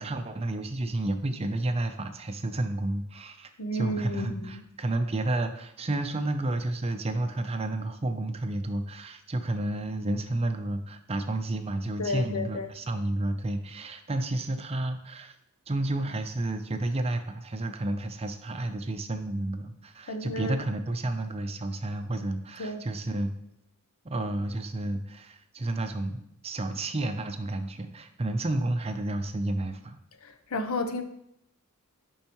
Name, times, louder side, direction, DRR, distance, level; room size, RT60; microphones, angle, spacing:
voice 1, 0.0-15.3 15.7-23.3 24.0-30.0, right 2 dB, 30° right, 7 dB, 0.5 m, -31 dB
voice 2, 3.6-4.6 12.0-12.7 20.1-20.6 22.6-22.9 30.2-31.0, left 1 dB, 70° left, 7 dB, 0.7 m, -32 dB
10.5 x 5.4 x 3.0 m, 0.76 s
head